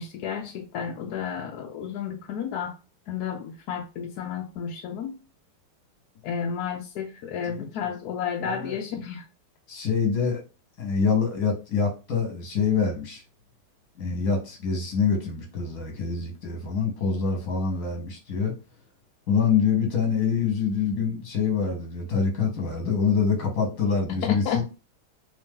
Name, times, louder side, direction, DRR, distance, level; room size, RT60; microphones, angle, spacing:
voice 1, 0.0-2.8 3.1-5.2 6.2-9.2 24.2-24.6, left 7 dB, 80° left, 0.8 m, -31 dB
voice 2, 7.4-7.9 8.4-8.8 9.7-10.4 10.8-13.2 14.0-18.5 19.3-24.6, left 5 dB, 50° left, 1.4 m, -25 dB
3.3 x 2.7 x 3.6 m
omnidirectional pair, 2.3 m